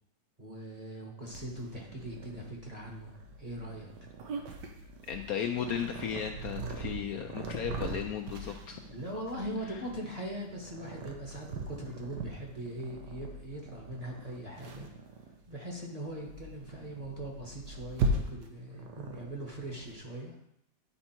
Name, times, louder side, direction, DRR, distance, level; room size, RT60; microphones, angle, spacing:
voice 1, 0.4-4.1 8.9-14.9 15.5-20.3, right 1 dB, 25° right, -2 dB, 1.3 m, -41 dB
Purr, 1.3-20.0, right 2 dB, 85° right, 1.5 m, -40 dB
voice 2, 5.1-8.8, left 8 dB, 70° left, 5 dB, 0.9 m, -35 dB
10.0 x 4.4 x 4.4 m, 0.75 s
omnidirectional pair, 1.8 m